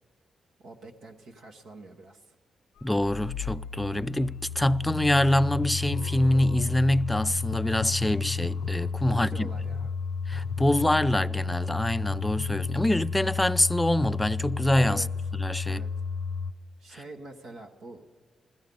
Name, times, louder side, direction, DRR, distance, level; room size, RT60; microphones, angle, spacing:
voice 1, 0.6-2.3 9.1-9.9 14.8-15.1 15.6-15.9 16.8-18.0, right 2 dB, 80° right, 1.2 m, -45 dB
sound 1, 2.8-16.5, left 5 dB, 90° left, 0.4 m, -32 dB
voice 2, 2.8-9.5 10.3-15.0 15.4-15.8, left 1 dB, 10° left, 0.3 m, -25 dB
16.0 x 13.5 x 5.4 m
supercardioid pair, 50°, 0 cm